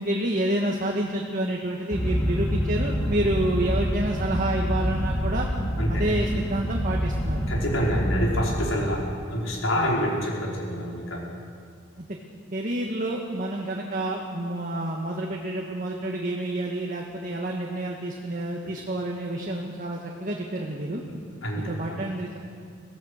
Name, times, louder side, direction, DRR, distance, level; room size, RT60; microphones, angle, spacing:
voice 1, 0.0-5.5 5.9-7.5 9.7-10.0 12.0-12.2 12.5-21.0 21.7-22.4, right 1 dB, 40° right, -1 dB, 1.7 m, -29 dB
sound 1, 1.9-8.6, equal, 10° left, 2.9 m, -27 dB
voice 2, 7.5-11.3 18.6-18.7 21.1-21.6 21.9-22.0, equal, 85° left, -3 dB, 5.1 m, -27 dB
24.0 x 16.5 x 6.6 m, 2.2 s
head